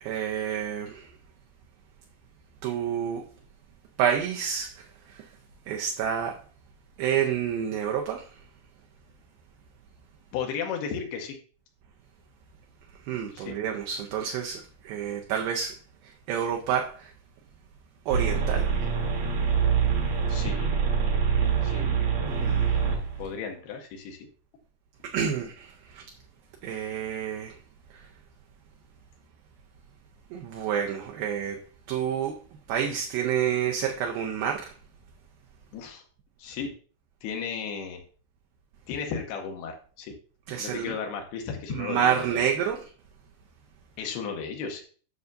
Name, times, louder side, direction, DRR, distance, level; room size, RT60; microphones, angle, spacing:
voice 1, 0.0-1.0 2.6-3.2 4.0-4.7 5.7-6.3 7.0-8.2 13.1-15.7 16.3-17.1 18.1-18.7 22.3-22.7 25.1-25.7 25.9-26.0 26.6-27.5 30.3-31.6 31.9-32.4 32.7-34.7 40.5-40.9 41.7-42.8, right 8 dB, 75° right, 2.3 m, -28 dB
voice 2, 10.3-11.4 13.3-13.5 20.3-20.7 21.6-22.0 23.2-24.3 35.7-36.0 36.4-36.7 37.2-38.0 38.9-40.1 40.6-42.6 44.0-44.8, left 6 dB, 80° left, 2.7 m, -34 dB
sound 1, 18.1-23.2, right 6 dB, 60° right, 1.8 m, -25 dB
9.5 x 6.3 x 2.6 m
omnidirectional pair, 4.8 m